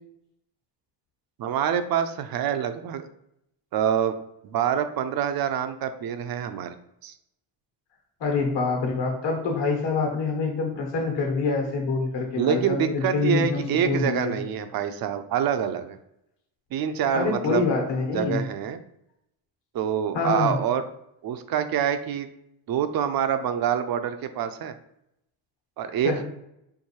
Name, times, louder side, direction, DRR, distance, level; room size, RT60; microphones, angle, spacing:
voice 1, 1.4-3.1 3.7-4.1 4.4-6.8 7.0-7.1 12.4-16.0 16.7-17.6 18.1-18.8 19.7-20.8 21.2-22.3 22.7-24.7 25.8-26.1, right 8 dB, 50° right, 9 dB, 0.5 m, -26 dB
voice 2, 8.2-14.4 17.1-18.4 20.1-20.5 26.0-26.2, left 4 dB, 55° left, 1 dB, 1.3 m, -26 dB
4.6 x 2.6 x 2.9 m, 0.78 s
supercardioid pair, 75°, 49 cm